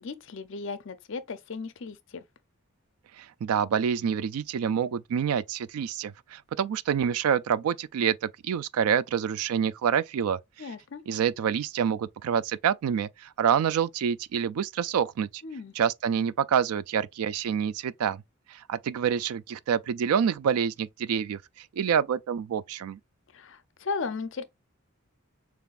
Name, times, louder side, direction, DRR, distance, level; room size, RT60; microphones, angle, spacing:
voice 1, 0.0-2.2 10.6-11.0 15.4-15.7 23.3-24.4, left 4 dB, 60° left, 0.5 m, -36 dB
voice 2, 3.2-10.4 11.1-15.4 15.8-18.2 18.5-23.0, right 8 dB, 85° right, 0.3 m, -27 dB
6.8 x 2.5 x 2.4 m
head